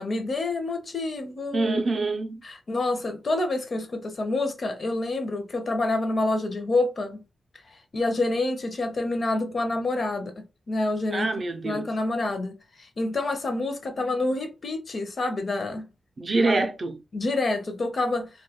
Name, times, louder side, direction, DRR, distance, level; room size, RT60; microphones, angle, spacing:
voice 1, 0.0-1.7 2.4-7.2 7.7-11.3 11.6-15.9 16.4-16.5 17.1-18.3, left 2 dB, 45° left, 0.6 m, -27 dB
voice 2, 1.5-2.4 11.1-11.9 16.2-17.0, right 3 dB, 40° right, 0.4 m, -25 dB
2.2 x 2.2 x 2.8 m
wide cardioid pair, 125°, 0 cm